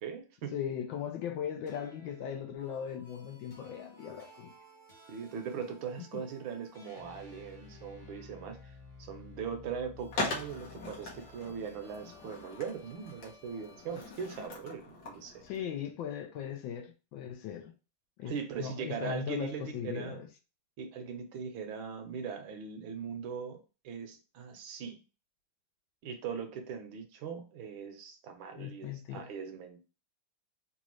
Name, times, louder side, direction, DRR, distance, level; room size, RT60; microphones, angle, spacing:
voice 1, 0.0-0.5 5.1-8.7 9.0-15.4 18.2-20.2 20.8-25.0 26.0-29.8, right 6 dB, 75° right, 1.4 m, -40 dB
voice 2, 0.5-4.5 15.4-17.7 18.2-20.3 28.6-29.3, left 9 dB, 75° left, 1.3 m, -38 dB
sound 1, 1.7-14.2, left 2 dB, 35° left, 0.8 m, -55 dB
Skateboard, 10.1-15.6, left 2 dB, 55° left, 1.4 m, -41 dB
4.0 x 2.4 x 3.0 m
omnidirectional pair, 2.3 m